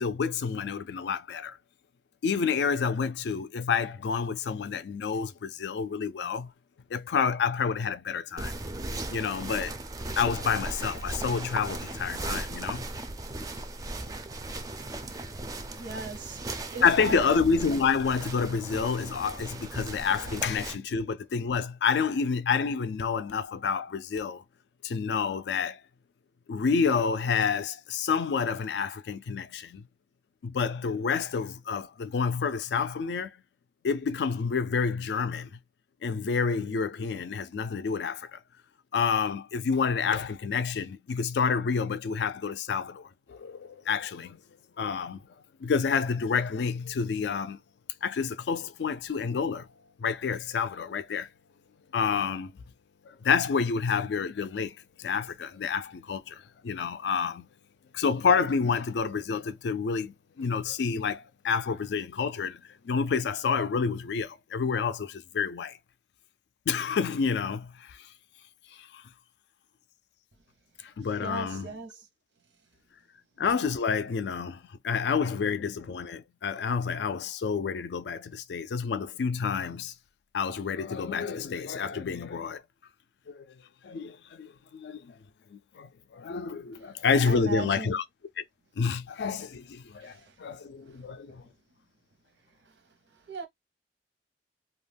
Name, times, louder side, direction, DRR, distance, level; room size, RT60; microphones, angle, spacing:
voice 1, 0.0-1.6 2.2-6.5 6.9-8.5 9.1-9.8 10.2-12.8 16.8-24.4 24.8-25.8 26.5-29.8 30.4-33.3 33.8-35.5 36.0-38.4 38.9-44.4 44.8-45.2 45.6-47.6 48.0-49.7 50.0-51.3 51.9-52.5 53.1-57.5 57.9-65.8 66.7-68.1 68.8-69.0 71.0-71.8 73.4-79.9 80.3-82.6 83.3-83.4 83.8-85.1 85.5-88.0 88.4-88.5 88.8-91.4, left 5 dB, 70° left, 0.4 m, -29 dB
sound 1, 8.4-20.7, right 2 dB, 20° right, 0.4 m, -37 dB
voice 2, 15.8-16.4 16.7-17.3 71.2-72.0 87.2-87.9 90.0-90.2 91.3-91.4 93.3-93.5, right 3 dB, 85° right, 0.8 m, -37 dB
2.3 x 2.2 x 3.3 m
head